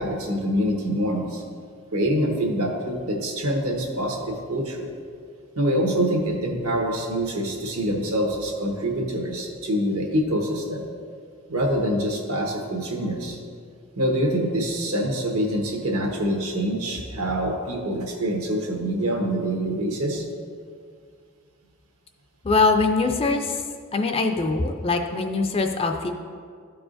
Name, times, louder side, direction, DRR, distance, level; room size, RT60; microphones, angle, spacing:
voice 1, 0.0-1.4 1.9-4.9 5.6-10.8 11.5-13.4 14.0-20.2, equal, 80° right, 1 dB, 1.2 m, -25 dB
voice 2, 22.4-23.6 23.9-26.1, left 3 dB, 25° left, 4 dB, 0.4 m, -22 dB
13.0 x 4.7 x 2.5 m, 2.1 s
head